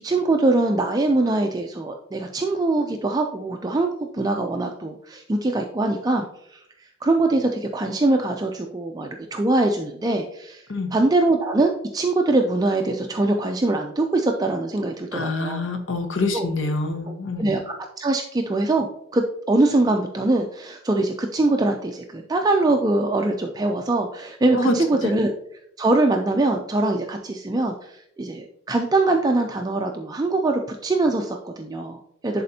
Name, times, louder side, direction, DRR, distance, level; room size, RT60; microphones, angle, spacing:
voice 1, 0.0-3.9 4.1-15.7 16.3-16.5 17.1-25.3 25.8-32.4, right 2 dB, 20° right, 3 dB, 0.4 m, -23 dB
voice 2, 15.1-17.5 24.5-24.7, left 2 dB, 75° left, 6 dB, 0.9 m, -25 dB
10.5 x 4.2 x 2.7 m, 0.75 s
head